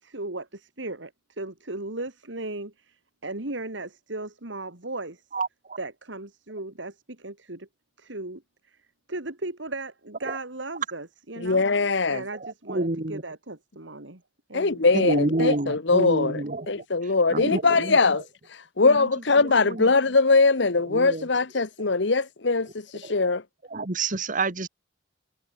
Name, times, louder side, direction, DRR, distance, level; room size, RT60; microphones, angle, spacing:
voice 1, 0.0-5.2 5.8-7.7 8.0-8.4 8.7-8.8 9.1-11.6 12.1-14.2 14.5-14.9, right 2 dB, 70° right, 3.0 m, -36 dB
voice 2, 5.3-5.8 10.2-10.4 12.1-13.2 14.9-16.8 17.3-18.2 18.8-19.1 19.3-19.9 20.9-21.3 21.6-21.7 23.0-23.1 23.7-24.7, right 2 dB, 45° right, 1.8 m, -29 dB
voice 3, 11.4-12.2 14.5-16.4 16.7-18.2 18.5-23.4, left 3 dB, 65° left, 1.1 m, -22 dB
head